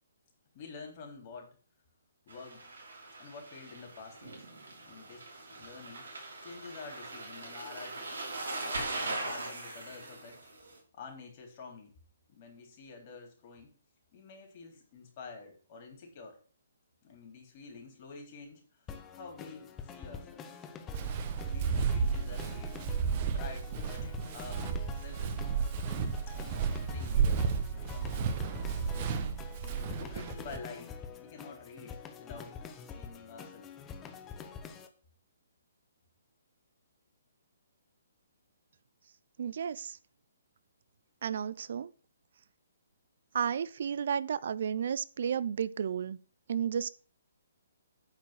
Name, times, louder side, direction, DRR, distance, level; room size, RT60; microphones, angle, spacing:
voice 1, 0.5-1.6 2.3-2.7 3.2-4.5 4.8-5.2 5.5-6.1 6.4-8.2 8.6-10.5 10.9-11.9 12.3-13.7 14.1-16.4 17.0-18.6 18.9-20.5 21.4-22.8 23.3-25.5 25.9-28.3 28.9-29.4 29.9-33.7, left 4 dB, 40° left, 3.6 m, -49 dB
sound 1, 2.3-10.8, right 2 dB, 80° right, 4.1 m, -41 dB
sound 2, 18.9-34.9, left 6 dB, 20° left, 1.0 m, -46 dB
Walk footsteps, 20.9-30.6, right 6 dB, 40° right, 1.2 m, -32 dB
voice 2, 39.4-40.0 41.2-41.9 43.3-46.2 46.5-46.9, right 8 dB, 60° right, 0.5 m, -32 dB
9.4 x 4.6 x 6.4 m
hypercardioid pair, 140°, 0 cm